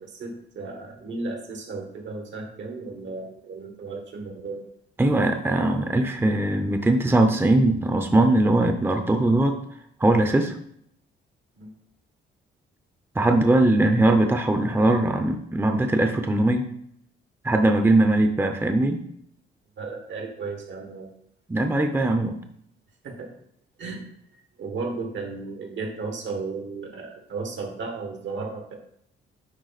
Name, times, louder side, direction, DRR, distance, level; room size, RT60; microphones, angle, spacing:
voice 1, 0.0-4.6 11.6-11.7 19.8-21.1 23.0-23.3 23.8-24.1 24.6-28.8, right 3 dB, 70° right, 3 dB, 1.7 m, -34 dB
voice 2, 5.0-9.6 10.0-10.6 13.1-16.7 17.4-19.0 21.5-22.4, right 2 dB, 10° right, 6 dB, 0.7 m, -20 dB
10.0 x 3.6 x 4.1 m, 0.71 s
cardioid pair, 90°, 20 cm